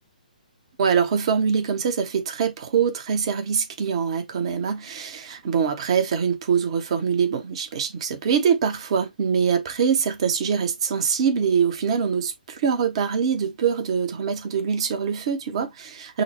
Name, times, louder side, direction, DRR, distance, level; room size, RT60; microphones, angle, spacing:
voice 1, 0.8-16.2, right 6 dB, 40° right, 0.8 m, -24 dB
6.1 x 2.1 x 3.1 m
figure-of-eight pair, 130°, 5 cm